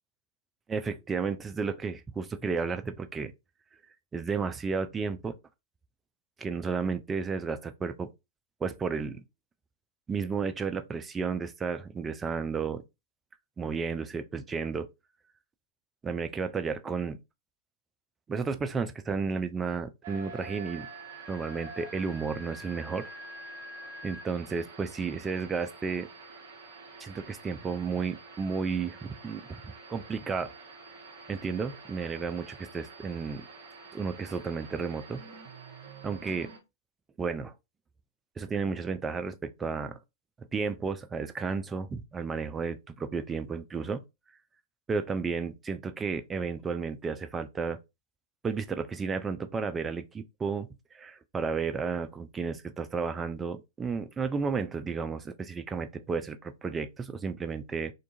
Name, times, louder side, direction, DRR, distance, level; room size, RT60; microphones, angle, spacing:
voice 1, 0.7-3.3 4.1-5.4 6.4-8.1 8.6-9.2 10.1-12.8 13.6-14.9 16.0-17.2 18.3-20.9 21.3-23.1 24.0-26.1 27.0-29.6 29.9-30.5 31.3-33.5 33.9-35.2 36.0-36.5 37.2-37.5 38.4-40.0 40.5-44.0 44.9-47.8 48.4-50.7 50.9-57.9, right 5 dB, 15° right, 0.3 m, -32 dB
sound 1, 20.0-36.6, right 2 dB, 55° right, 0.7 m, -47 dB
2.5 x 2.3 x 2.6 m
figure-of-eight pair, 100°, 0 cm